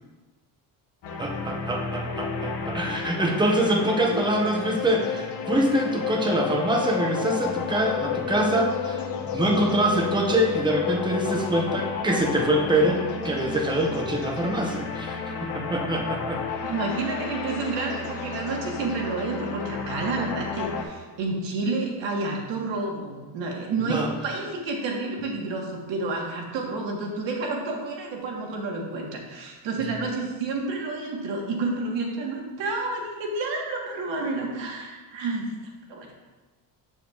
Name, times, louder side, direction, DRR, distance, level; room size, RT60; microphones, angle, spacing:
sound 1, 1.0-20.8, left 6 dB, 65° left, 1.1 m, -31 dB
voice 1, 1.2-9.0 9.3-16.4 23.9-24.1, right 1 dB, 10° right, 2 dB, 0.8 m, -25 dB
voice 2, 16.6-35.5 35.9-36.1, right 3 dB, 80° right, 0 dB, 1.4 m, -30 dB
7.1 x 6.6 x 2.4 m, 1.2 s
cardioid pair, 110°, 43 cm